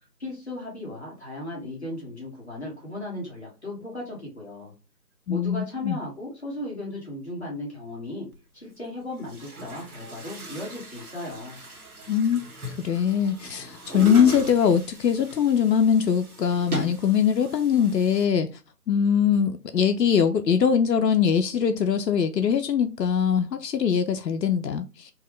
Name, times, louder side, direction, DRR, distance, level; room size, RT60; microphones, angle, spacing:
voice 1, 0.2-4.7 5.3-8.3 8.5-11.6, left 1 dB, 40° left, 1.5 m, -36 dB
voice 2, 5.3-6.0 12.1-12.4 12.7-18.5 18.9-25.1, left 7 dB, 85° left, 0.6 m, -22 dB
Chatter / Gurgling / Tap, 8.3-8.4 9.1-18.2, right 2 dB, 60° right, 1.3 m, -39 dB
4.6 x 2.3 x 3.1 m
figure-of-eight pair, 170°, 49 cm